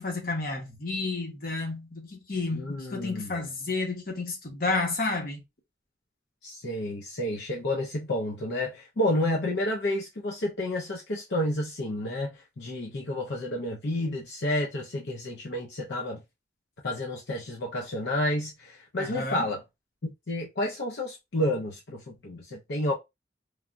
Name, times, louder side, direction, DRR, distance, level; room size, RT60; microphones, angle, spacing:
voice 1, 0.0-5.4 19.0-19.5, left 3 dB, 50° left, 1.0 m, -31 dB
voice 2, 2.5-3.4 6.4-16.2 16.8-19.6 20.0-22.9, left 1 dB, 70° left, 0.7 m, -30 dB
3.2 x 2.3 x 2.4 m
head